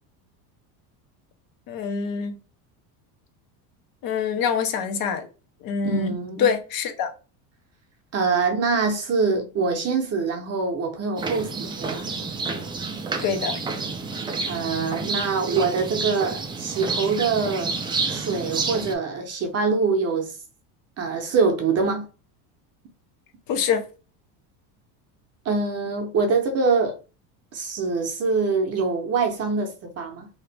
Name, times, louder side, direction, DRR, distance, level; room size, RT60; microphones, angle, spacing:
voice 1, 1.7-2.4 4.0-5.3 5.6-7.1 13.2-13.6 23.5-23.9, left 6 dB, 50° left, 0.8 m, -25 dB
voice 2, 5.8-6.5 8.1-12.1 14.5-17.7 18.1-20.3 21.0-22.1 25.4-27.0 27.5-30.3, right 4 dB, 35° right, 0.7 m, -24 dB
sound 1, 11.2-18.9, right 4 dB, 10° right, 0.3 m, -29 dB
2.9 x 2.4 x 3.3 m
supercardioid pair, 110°, 46 cm